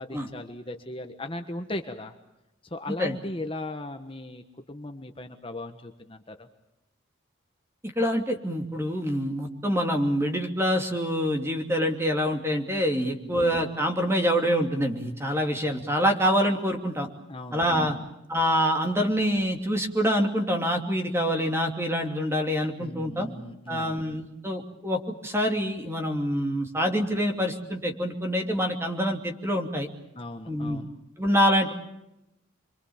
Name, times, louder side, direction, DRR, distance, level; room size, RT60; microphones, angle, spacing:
voice 1, 0.0-2.2 2.7-6.5 12.9-13.4 17.3-18.0 22.8-24.0 30.1-30.9, left 1 dB, 25° left, 5 dB, 1.3 m, -38 dB
voice 2, 7.8-17.1 17.5-18.0 18.3-23.3 23.7-29.9 30.5-30.8 31.2-31.7, equal, 10° right, 4 dB, 2.8 m, -26 dB
28.5 x 23.5 x 7.2 m, 0.91 s
head